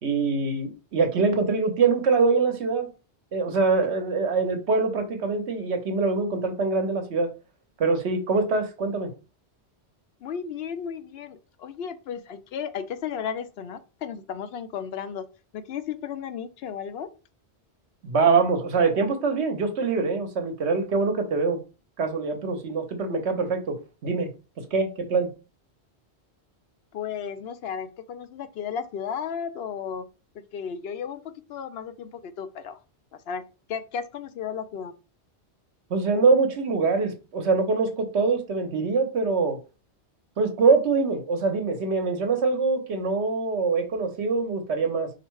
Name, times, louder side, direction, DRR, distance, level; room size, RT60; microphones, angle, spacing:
voice 1, 0.0-2.9 3.3-7.3 7.8-9.1 18.0-21.6 22.0-24.3 24.6-25.3 35.9-39.6 40.4-45.1, right 4 dB, 80° right, 1.2 m, -24 dB
voice 2, 10.2-15.3 15.5-17.1 26.9-30.1 30.5-32.8 33.3-35.0, left 7 dB, 70° left, 0.8 m, -34 dB
4.7 x 2.2 x 4.6 m
omnidirectional pair, 1.1 m